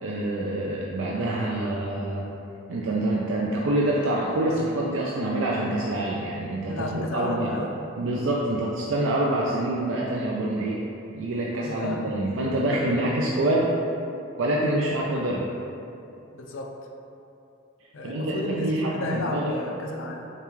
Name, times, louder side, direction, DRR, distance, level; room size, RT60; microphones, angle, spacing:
voice 1, 0.0-2.3 2.7-7.5 8.0-10.8 11.1-13.8 14.4-15.5 18.0-19.5, right 1 dB, 75° right, -4 dB, 0.4 m, -26 dB
voice 2, 6.6-7.9 11.6-13.1 16.3-16.7 17.9-20.3, left 2 dB, 80° left, 1 dB, 0.5 m, -32 dB
6.6 x 2.3 x 3.1 m, 2.8 s
head